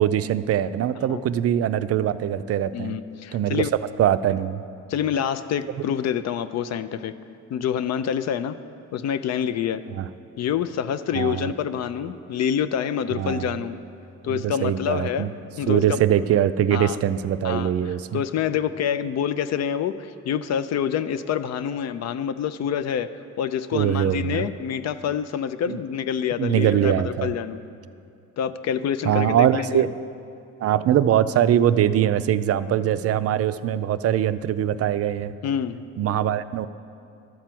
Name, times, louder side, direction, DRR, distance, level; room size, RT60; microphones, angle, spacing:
voice 1, 0.0-3.0 3.3-3.7 4.0-4.6 10.0-10.1 11.1-11.5 13.1-13.6 14.3-15.3 15.7-18.2 23.7-24.4 25.7-25.8 26.4-27.3 29.0-29.9 30.6-35.3 36.0-36.7, right 10 dB, 50° right, 13 dB, 0.4 m, -22 dB
voice 2, 2.7-3.7 4.9-7.1 7.5-8.6 8.9-9.8 10.4-13.8 14.2-15.3 15.6-16.0 16.7-17.0 17.4-17.7 18.1-23.1 23.4-27.6 28.4-29.9 35.4-35.8, left 8 dB, 60° left, 12 dB, 0.5 m, -27 dB
12.0 x 4.4 x 7.6 m, 2.5 s
cardioid pair, 90°, 30 cm